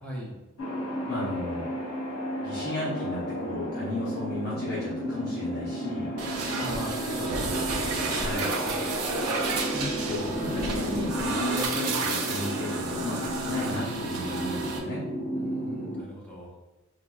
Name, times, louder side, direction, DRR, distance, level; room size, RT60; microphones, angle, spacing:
voice 1, 0.0-0.3 6.6-7.8 8.6-8.9 15.3-16.6, equal, 5° left, -5 dB, 0.7 m, -39 dB
sound 1, 0.6-16.0, equal, 80° left, 0.9 m, -33 dB
voice 2, 1.1-1.7 2.4-6.1 8.1-8.5 9.7-15.0, left 1 dB, 45° left, -9 dB, 0.7 m, -34 dB
sound 2, 6.2-14.8, right 3 dB, 85° right, 0.5 m, -31 dB
4.4 x 2.2 x 2.4 m, 1.1 s
head